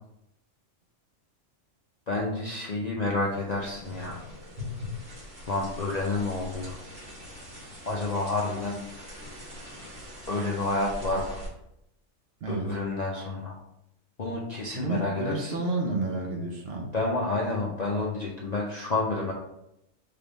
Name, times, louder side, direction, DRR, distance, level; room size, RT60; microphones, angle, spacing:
voice 1, 2.1-4.2 5.5-6.8 7.8-8.8 10.3-11.4 12.5-13.6 14.2-15.5 16.9-19.3, left 2 dB, 50° left, -2 dB, 0.5 m, -29 dB
sound 1, 3.3-11.5, left 2 dB, 85° right, 1.9 m, -42 dB
voice 2, 12.4-12.8 14.7-16.9, right 2 dB, 55° right, 1 dB, 1.0 m, -30 dB
3.8 x 3.5 x 3.9 m, 0.84 s
omnidirectional pair, 1.3 m